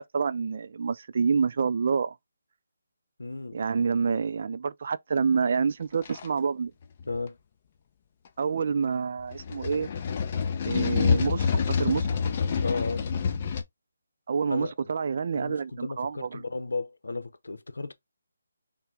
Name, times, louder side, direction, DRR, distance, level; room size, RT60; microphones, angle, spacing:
voice 1, 0.0-2.2 3.5-6.7 8.4-9.9 10.7-12.1 14.3-16.4, right 5 dB, 50° right, 0.4 m, -27 dB
voice 2, 3.2-3.6 7.1-7.4 12.6-13.1 14.5-14.7 15.3-17.9, left 3 dB, 85° left, 0.8 m, -34 dB
sound 1, 6.0-6.3 7.0-7.2 9.3-13.6, left 6 dB, 30° left, 0.6 m, -27 dB
5.7 x 2.2 x 3.5 m
hypercardioid pair, 165°, 0 cm